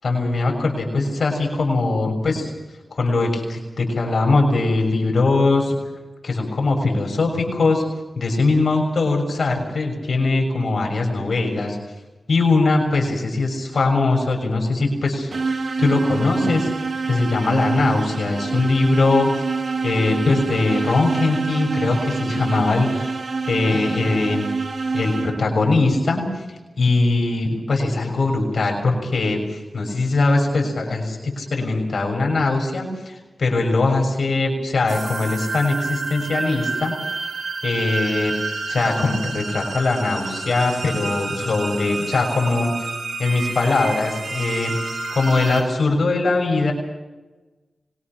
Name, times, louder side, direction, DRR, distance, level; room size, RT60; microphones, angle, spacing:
voice 1, 0.0-2.5 2.9-5.8 6.2-7.8 8.1-11.8 12.3-15.3 15.8-16.7 17.0-19.4 19.8-23.1 23.5-24.4 24.9-26.2 26.8-36.9 37.6-38.3 38.7-42.9 43.2-44.7 45.1-46.7, left 3 dB, 65° left, 1 dB, 6.6 m, -21 dB
sound 1, 15.3-25.7, right 4 dB, 65° right, 1.8 m, -26 dB
sound 2, 34.9-45.6, right 3 dB, 80° right, 4.6 m, -29 dB
25.0 x 22.0 x 6.2 m, 1.1 s
wide cardioid pair, 70°, 0 cm